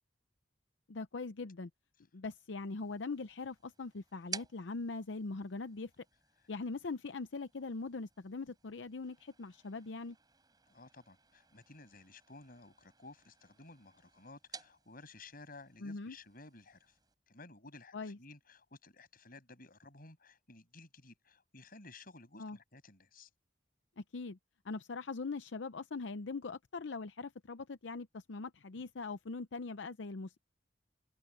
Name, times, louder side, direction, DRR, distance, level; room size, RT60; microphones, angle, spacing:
voice 1, 0.9-1.7 2.1-6.0 6.5-10.2 15.8-16.2 17.9-18.2 22.4-22.6 24.0-24.4 24.6-30.4, left 3 dB, 85° left, 0.7 m, -41 dB
sound 1, 2.8-17.1, right 5 dB, 25° right, 4.6 m, -54 dB
voice 2, 10.7-16.9 17.3-23.3, left 3 dB, 55° left, 7.1 m, -55 dB
head